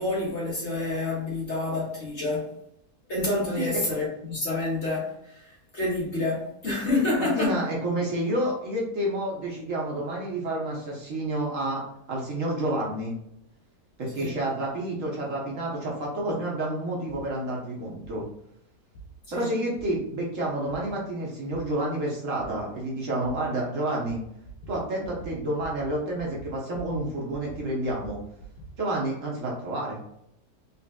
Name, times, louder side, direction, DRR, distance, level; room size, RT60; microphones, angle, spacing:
voice 1, 0.0-2.5 3.1-7.6 14.2-14.4 19.3-19.5, left 2 dB, 45° left, 1.7 m, -28 dB
voice 2, 7.2-11.8 12.1-13.1 14.0-18.2 19.3-24.2 24.7-28.2 28.8-30.0, right 1 dB, 55° right, 1.3 m, -29 dB
sound 1, 17.1-17.2 18.0-18.1 18.9-19.1 19.8-19.9 20.7-20.8 21.5-21.6 22.4-22.5 23.2-23.3 24.0-24.2 24.4-24.8 25.0-25.3 25.6-25.9 26.2-27.0 27.3-28.7, right 3 dB, 80° left, 1.3 m, -43 dB
4.2 x 3.3 x 2.3 m
omnidirectional pair, 1.7 m